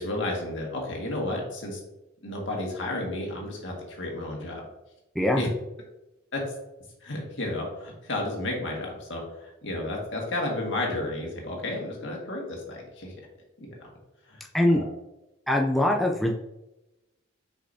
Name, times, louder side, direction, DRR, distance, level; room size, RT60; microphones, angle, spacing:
voice 1, 0.0-1.8 2.2-4.7 5.3-5.5 6.3-6.4 7.0-13.1 13.6-13.7 14.3-14.4 14.7-14.8, left 2 dB, 65° left, -1 dB, 1.8 m, -32 dB
voice 2, 15.5-16.3, left 1 dB, ahead, 0 dB, 0.4 m, -22 dB
6.6 x 5.3 x 2.7 m, 0.96 s
head